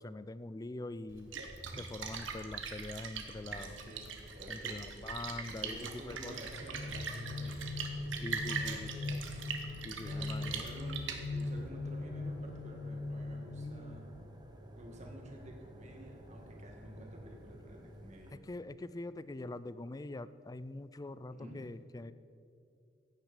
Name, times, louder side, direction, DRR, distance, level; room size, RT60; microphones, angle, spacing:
voice 1, 0.0-1.4 1.8-3.8 4.5-6.4 8.2-9.2 9.8-10.6 13.5-13.9 18.3-22.1, left 2 dB, 20° left, 14 dB, 0.4 m, -44 dB
Splash splatter, 1.1-11.7, right 5 dB, 85° right, 1.4 m, -42 dB
voice 2, 3.5-4.8 5.4-7.6 7.9-9.2 10.0-11.0 11.3-14.1 14.8-18.3 21.3-21.7, equal, 35° right, 0 dB, 2.2 m, -51 dB
sound 1, 6.5-14.4, left 3 dB, 60° left, 0.7 m, -41 dB
sound 2, 11.4-18.4, equal, 20° right, 1.1 m, -52 dB
15.5 x 9.6 x 5.1 m, 2.6 s
head